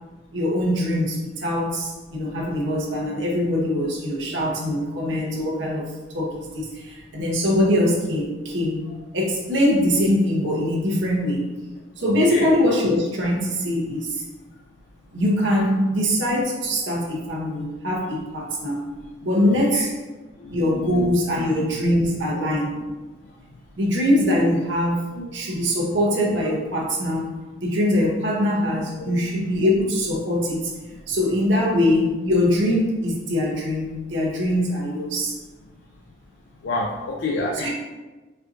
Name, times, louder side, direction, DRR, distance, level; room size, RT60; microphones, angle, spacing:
voice 1, 0.3-5.9 6.1-8.9 9.1-11.5 12.0-14.2 15.1-18.8 19.2-19.9 20.5-22.7 23.8-27.3 27.6-30.7 31.1-35.4 37.6-37.7, left 1 dB, 70° right, -1 dB, 0.8 m, -22 dB
voice 2, 20.4-21.1 23.2-23.6 25.1-25.3 26.2-26.3 28.7-29.2 31.1-31.3 35.2-35.3 36.6-37.7, left 2 dB, 65° left, -2 dB, 0.4 m, -30 dB
4.3 x 2.5 x 2.5 m, 1.2 s
head